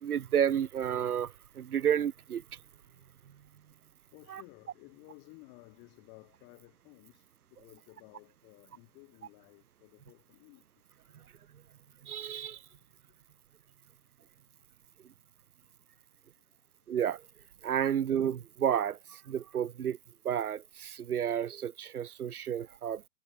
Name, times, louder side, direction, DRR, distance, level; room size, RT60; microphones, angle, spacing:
voice 1, 0.0-2.4 4.3-4.4 12.1-12.6 16.9-17.2 17.6-19.0 19.3-20.0 20.2-23.0, right 9 dB, 75° right, 1.3 m, -31 dB
voice 2, 2.8-3.1 4.1-10.6 11.2-11.4 16.3-16.7, left 31 dB, 25° left, 5.9 m, -56 dB
hypercardioid pair, 160°, 45 cm